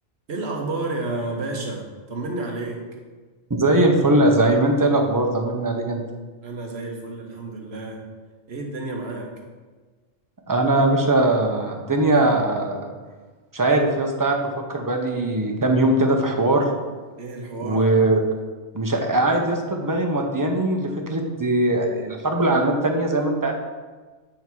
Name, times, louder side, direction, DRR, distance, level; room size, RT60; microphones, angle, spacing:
voice 1, 0.3-2.8 6.4-8.0 8.5-9.3 17.2-17.8, right 2 dB, 60° right, 0 dB, 1.3 m, -30 dB
voice 2, 3.5-6.0 10.5-12.9 13.5-14.4 14.7-16.6 17.6-18.2 18.7-23.5, right 2 dB, 20° right, 1 dB, 0.6 m, -20 dB
8.5 x 3.5 x 4.5 m, 1.3 s
omnidirectional pair, 1.2 m